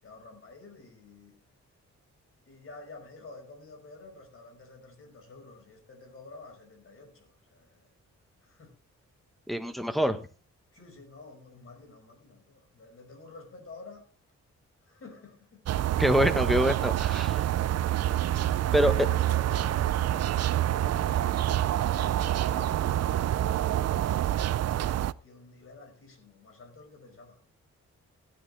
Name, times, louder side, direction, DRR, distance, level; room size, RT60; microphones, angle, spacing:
voice 1, 0.0-1.4 2.5-7.9 8.4-8.7 10.7-14.1 14.8-15.6 17.2-17.9 18.5-24.4 24.7-27.4, left 3 dB, 50° left, 5.6 m, -50 dB
voice 2, 9.5-10.2 16.0-17.4 18.7-18.9, equal, ahead, 1.2 m, -25 dB
sound 1, 15.6-25.1, right 12 dB, 60° right, 0.5 m, -27 dB
16.0 x 10.5 x 3.4 m
cardioid pair, 115°, 29 cm